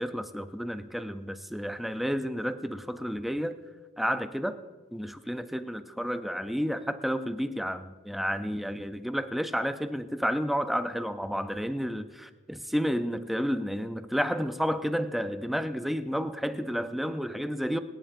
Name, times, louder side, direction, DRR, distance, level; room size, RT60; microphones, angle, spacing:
voice 1, 0.0-3.6 4.0-4.6 4.9-17.8, equal, ahead, 0.4 m, -31 dB
26.0 x 10.5 x 2.5 m
head